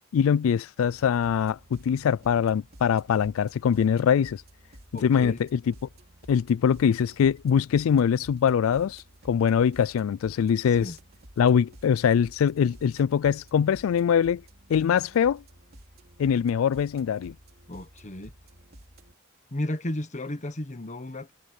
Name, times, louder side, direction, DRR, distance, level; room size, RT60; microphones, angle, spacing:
voice 1, 0.1-4.4 5.0-5.7 6.3-10.9 11.4-14.4 14.7-15.4 16.2-17.3, left 7 dB, 70° left, 0.3 m, -23 dB
sound 1, 0.8-19.1, right 1 dB, 50° right, 3.3 m, -52 dB
voice 2, 4.9-5.4 10.8-11.0 17.7-18.3 19.5-21.3, left 1 dB, 35° left, 1.3 m, -33 dB
head